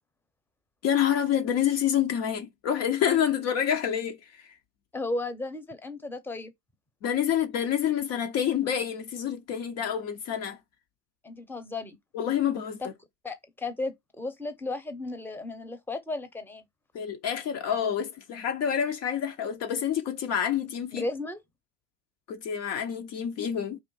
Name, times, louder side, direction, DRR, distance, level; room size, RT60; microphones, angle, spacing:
voice 1, 0.8-4.5 7.0-10.6 12.1-12.9 16.9-21.1 22.3-23.8, left 9 dB, 50° left, 0.6 m, -28 dB
voice 2, 4.9-6.5 11.2-12.0 12.8-12.9 13.2-16.6 20.9-21.4, left 2 dB, 5° left, 0.8 m, -34 dB
3.5 x 2.5 x 3.9 m
hypercardioid pair, 75°, 32 cm